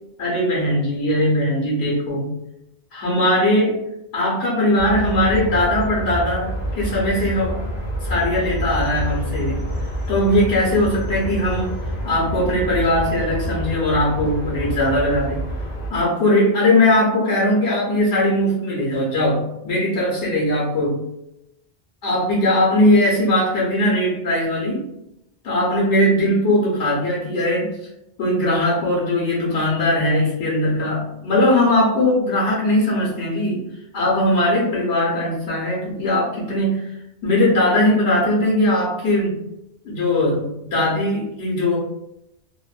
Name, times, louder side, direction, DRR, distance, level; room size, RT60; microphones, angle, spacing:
voice 1, 0.2-2.3 2.9-3.8 4.1-7.7 8.0-9.7 10.1-11.8 12.0-15.5 15.9-21.0 22.0-24.9 25.4-27.8 28.2-33.6 33.9-36.9 37.2-39.4 39.8-41.8, left 1 dB, 85° left, -4 dB, 1.2 m, -20 dB
sound 1, 4.8-15.9, equal, 60° left, 0.7 m, -28 dB
2.6 x 2.1 x 2.3 m, 0.83 s
omnidirectional pair, 1.1 m